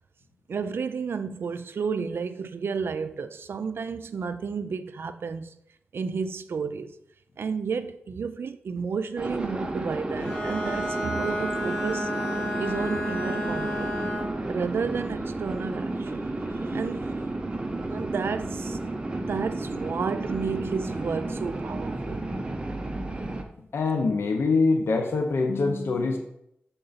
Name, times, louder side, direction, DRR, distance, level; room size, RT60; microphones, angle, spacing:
voice 1, 0.5-5.5 5.9-6.9 7.4-12.1 12.6-13.9 14.5-16.3 16.7-17.1 17.9-18.8 19.3-22.3, right 5 dB, 70° right, 0.4 m, -32 dB
sound 1, 9.2-23.4, right 2 dB, 25° right, 0.6 m, -32 dB
Bowed string instrument, 10.2-14.4, equal, 30° left, 1.6 m, -31 dB
voice 2, 23.7-26.2, left 3 dB, 85° left, 0.7 m, -24 dB
6.8 x 3.8 x 4.0 m
wide cardioid pair, 130°, 4 cm